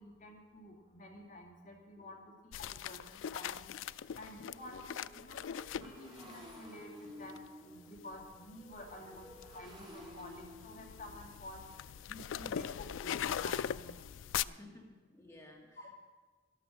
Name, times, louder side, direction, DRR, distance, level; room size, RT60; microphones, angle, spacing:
voice 1, 0.0-2.3 2.6-5.5 5.7-14.1 14.4-14.7 15.3-15.4, left 1 dB, 45° left, 0 dB, 2.5 m, -51 dB
Motorcycle, 2.0-2.1 2.6-2.7 3.0-14.6, left 1 dB, 25° right, 2.5 m, -55 dB
sound 1, 2.5-6.6 7.3-7.5 8.0-14.4, left 9 dB, 80° left, 0.3 m, -41 dB
voice 2, 14.6-15.9, left 1 dB, 15° left, -2 dB, 2.0 m, -56 dB
12.5 x 12.0 x 6.2 m, 1.3 s
head